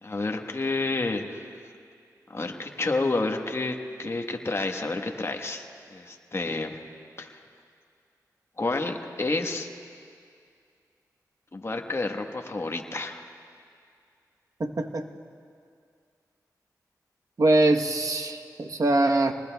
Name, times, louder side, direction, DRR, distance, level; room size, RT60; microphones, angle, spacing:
voice 1, 0.0-1.4 2.3-6.8 7.2-7.4 8.6-9.7 11.5-13.2, left 2 dB, 40° left, 3 dB, 1.2 m, -30 dB
voice 2, 14.6-15.0 17.4-19.3, right 2 dB, 55° right, 4 dB, 1.0 m, -23 dB
26.5 x 20.0 x 2.3 m, 2.3 s
cardioid pair, 50°, 7 cm